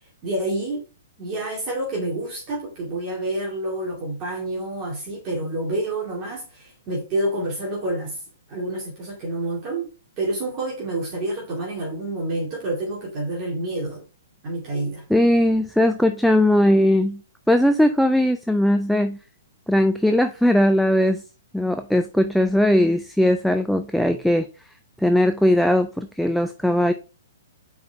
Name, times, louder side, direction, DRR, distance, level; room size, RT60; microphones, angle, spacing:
voice 1, 0.2-0.8 1.2-8.2 8.5-9.9 10.2-14.0 14.4-15.0, right 1 dB, 30° right, 2.4 m, -28 dB
voice 2, 15.1-17.2 17.5-19.2 19.7-21.2 21.5-24.5 25.0-26.9, left 1 dB, ahead, 0.4 m, -19 dB
5.0 x 4.8 x 4.3 m
figure-of-eight pair, 115°, 0 cm